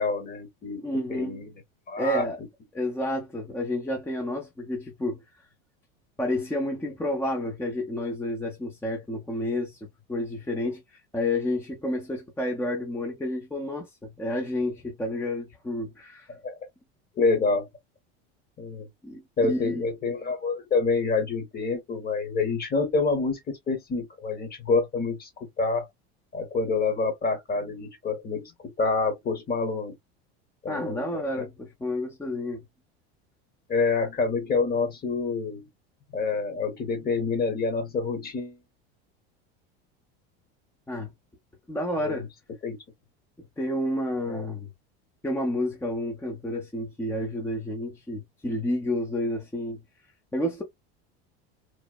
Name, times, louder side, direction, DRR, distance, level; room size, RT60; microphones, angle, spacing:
voice 1, 0.0-1.6 1.9-2.3 16.3-16.7 17.2-17.7 18.6-18.9 19.4-25.9 26.3-29.9 30.6-31.5 33.7-35.7 36.1-38.6 42.0-42.3 42.6-42.8 44.3-44.5, left 4 dB, 30° left, 1.1 m, -27 dB
voice 2, 0.8-1.4 2.0-2.4 2.7-5.2 6.2-9.8 10.1-16.3 19.0-19.2 19.5-19.9 30.7-32.6 40.9-41.1 41.7-42.3 43.6-44.7 45.2-49.8 50.3-50.6, left 1 dB, 10° left, 0.6 m, -30 dB
3.1 x 2.0 x 2.3 m
supercardioid pair, 105°, 31 cm